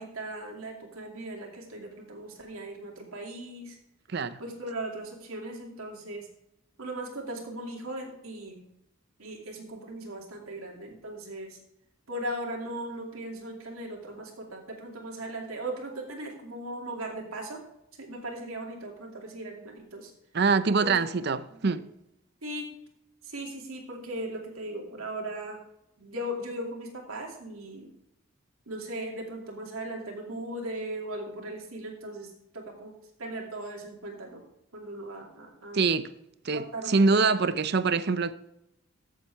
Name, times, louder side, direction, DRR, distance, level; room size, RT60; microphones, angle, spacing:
voice 1, 0.0-3.8 4.4-6.3 6.8-8.6 9.2-11.6 12.1-17.6 18.0-20.1 20.8-21.0 21.5-21.8 22.4-22.7 23.2-25.6 26.0-27.9 28.7-32.9 33.2-34.4 34.7-35.8 36.5-37.4, right 1 dB, 85° right, 2.5 m, -38 dB
voice 2, 20.3-21.8 35.7-36.1 36.4-38.3, right 4 dB, 50° right, 0.5 m, -24 dB
14.0 x 7.5 x 3.5 m
head